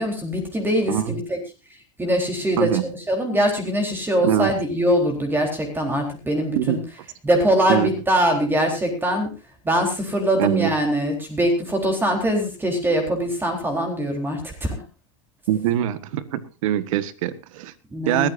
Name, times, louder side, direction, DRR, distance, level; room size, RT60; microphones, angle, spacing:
voice 1, 0.0-1.4 2.0-6.8 7.2-9.3 9.6-14.8 17.9-18.3, equal, 10° right, 3 dB, 4.0 m, -22 dB
voice 2, 4.2-4.5 6.5-6.8 7.7-7.9 10.4-10.7 15.5-17.7 18.1-18.3, right 12 dB, 80° right, 14 dB, 1.6 m, -23 dB
21.5 x 14.0 x 2.7 m, 0.30 s
supercardioid pair, 125°, 17 cm